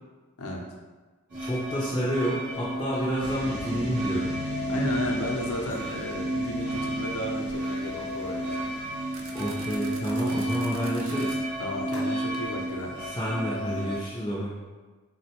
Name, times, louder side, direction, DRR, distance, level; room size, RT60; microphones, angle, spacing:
sound 1, 1.3-14.0, right 1 dB, 35° right, 0.8 m, -32 dB
voice 1, 1.4-4.3 9.3-11.4 13.1-14.5, equal, 15° left, -9 dB, 0.4 m, -29 dB
sound 2, 3.2-13.3, left 1 dB, 90° right, 0.9 m, -42 dB
voice 2, 4.7-8.7 10.2-10.5 11.6-13.0, left 1 dB, 85° left, 0 dB, 0.6 m, -33 dB
sound 3, 9.1-11.4, right 4 dB, 60° right, 0.4 m, -45 dB
3.7 x 2.1 x 2.8 m, 1.3 s
head